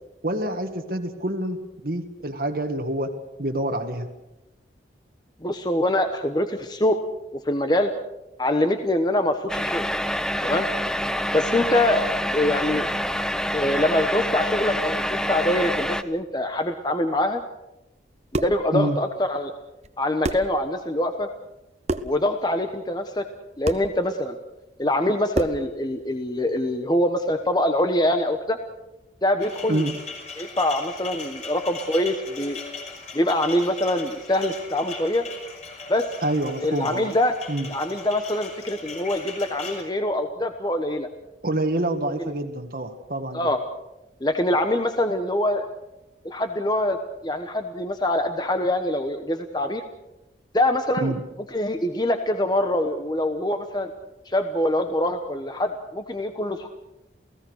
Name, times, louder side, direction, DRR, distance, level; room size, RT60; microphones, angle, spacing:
voice 1, 0.2-3.1 3.4-4.1 18.7-19.0 29.7-29.9 36.2-37.1 37.5-37.7 41.4-43.5 51.0-51.2, right 1 dB, 55° right, 4 dB, 1.7 m, -27 dB
voice 2, 5.4-7.0 7.4-7.9 8.4-9.9 10.4-10.7 11.3-12.0 12.3-12.9 13.5-17.4 18.3-19.5 20.0-21.3 22.0-23.2 23.6-24.4 24.8-28.6 29.2-29.9 30.4-32.6 33.1-35.2 35.9-36.1 36.6-37.3 37.7-41.1 43.3-43.6 44.2-45.7 46.2-47.0 47.2-49.8 50.5-51.1 51.5-53.9 54.2-56.7, left 1 dB, 25° left, 7 dB, 1.1 m, -24 dB
sound 1, 9.5-16.0, equal, 5° left, 0.7 m, -26 dB
sound 2, 18.1-18.7 19.8-19.9 20.2-20.6 21.8-22.2 23.6-23.9 25.3-25.7, right 1 dB, 35° right, 1.1 m, -28 dB
sound 3, 29.4-39.8, left 4 dB, 40° left, 5.6 m, -38 dB
29.0 x 17.0 x 6.5 m, 0.96 s
head